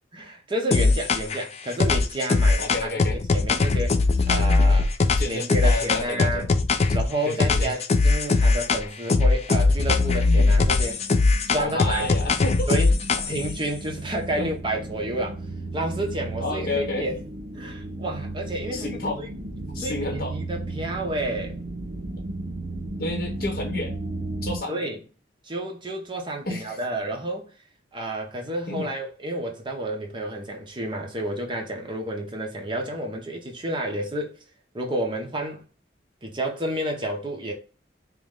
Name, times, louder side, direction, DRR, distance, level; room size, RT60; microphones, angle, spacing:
voice 1, 0.1-4.0 4.3-4.9 5.3-6.4 6.9-11.1 11.4-12.1 12.7-13.0 13.3-15.4 15.7-17.2 17.5-18.9 19.2-19.3 19.8-21.6 24.7-25.0 25.4-27.4 27.9-34.4 34.7-35.6 36.2-37.5, right 1 dB, 25° right, 0.8 m, -30 dB
sound 1, 0.7-1.4 1.8-7.1 7.4-8.8 9.1-13.5, left 3 dB, 35° left, 0.4 m, -20 dB
voice 2, 2.6-3.2 5.2-6.4 7.2-7.7 11.6-12.7 14.4-14.6 16.4-17.1 18.7-19.3 19.7-20.4 23.0-23.9 24.4-24.9 26.5-26.8 28.7-28.9, left 2 dB, 55° left, 0.9 m, -30 dB
sound 2, 10.4-24.6, right 2 dB, 75° right, 0.9 m, -35 dB
4.8 x 2.1 x 3.6 m
head